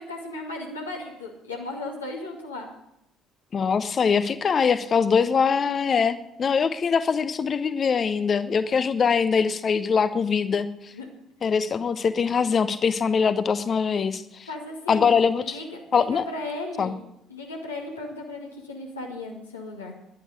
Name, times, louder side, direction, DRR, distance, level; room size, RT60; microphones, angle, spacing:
voice 1, 0.0-2.7 10.9-11.1 14.5-15.2 15.4-17.0 17.3-19.9, left 2 dB, 85° left, -2 dB, 2.3 m, -36 dB
voice 2, 3.5-10.9 11.4-14.5 14.9-15.6 15.9-16.3 16.8-16.9, left 6 dB, 40° left, 13 dB, 1.0 m, -23 dB
11.0 x 9.2 x 9.9 m, 0.81 s
figure-of-eight pair, 50°, 0 cm